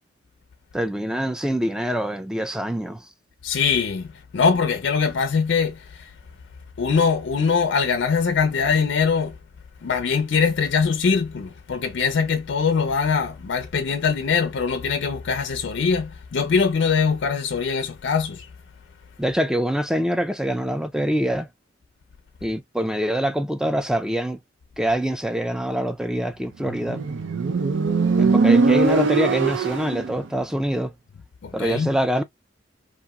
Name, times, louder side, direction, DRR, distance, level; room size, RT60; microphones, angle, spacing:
voice 1, 0.7-3.0 19.2-21.5 22.4-24.4 24.8-27.0 28.2-30.9 31.5-32.2, equal, 5° right, 0.3 m, -25 dB
voice 2, 3.4-4.1 4.3-6.1 6.8-9.3 9.8-18.4 31.4-31.9, left 5 dB, 65° left, 0.4 m, -22 dB
Motorcycle, 26.7-30.2, right 4 dB, 75° right, 0.5 m, -20 dB
2.9 x 2.4 x 2.3 m
head